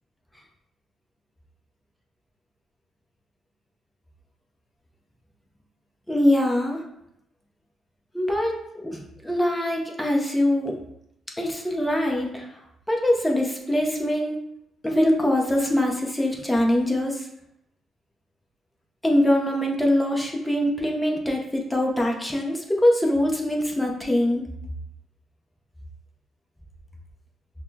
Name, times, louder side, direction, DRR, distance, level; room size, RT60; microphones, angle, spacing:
voice 1, 6.1-6.8 8.1-10.8 11.4-12.5 12.9-14.4 14.8-17.3 19.0-24.4, left 1 dB, 5° left, -1 dB, 0.8 m, -23 dB
5.8 x 2.2 x 2.8 m, 0.77 s
cardioid pair, 90°, 0 cm